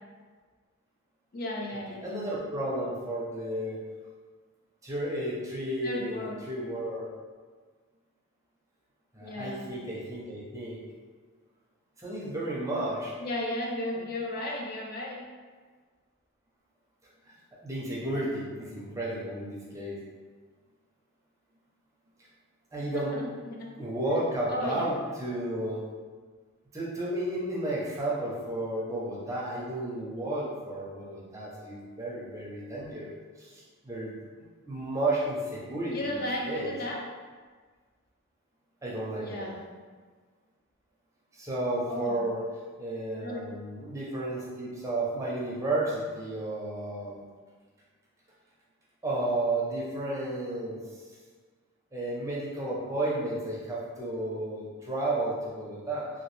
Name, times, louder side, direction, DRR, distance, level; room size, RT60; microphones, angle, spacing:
voice 1, 1.3-2.2 5.8-6.4 9.2-9.6 13.2-15.2 22.8-23.7 24.5-24.9 35.9-37.0 39.2-39.6 41.9-42.2 43.2-43.6, left 1 dB, 45° left, -1 dB, 0.4 m, -34 dB
voice 2, 1.9-3.8 4.8-7.1 9.1-10.8 12.0-13.1 17.3-17.4 17.6-20.0 22.7-23.2 23.8-25.9 26.7-36.7 38.8-39.5 41.3-42.4 42.8-47.2 49.0-51.0 51.9-56.1, right 1 dB, 15° right, -5 dB, 0.5 m, -32 dB
2.9 x 2.5 x 3.1 m, 1.5 s
head